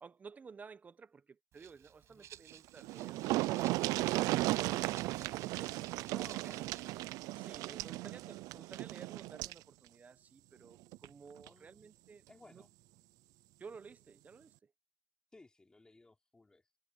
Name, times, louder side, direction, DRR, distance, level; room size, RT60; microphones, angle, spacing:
voice 1, 0.0-4.7 5.3-5.8 7.3-12.6 13.6-14.7, right 5 dB, 25° right, 1.2 m, -55 dB
Rattle (instrument), 1.5-7.0, right 11 dB, 55° right, 6.0 m, -57 dB
sound 1, 2.5-2.6 2.8-9.6 10.9-11.1 11.5-11.6, right 18 dB, 75° right, 0.6 m, -35 dB
voice 2, 6.1-6.8 7.7-8.4 11.4-11.9 12.3-12.7 15.3-16.7, left 2 dB, 15° left, 3.4 m, -59 dB
cardioid pair, 125°, 6 cm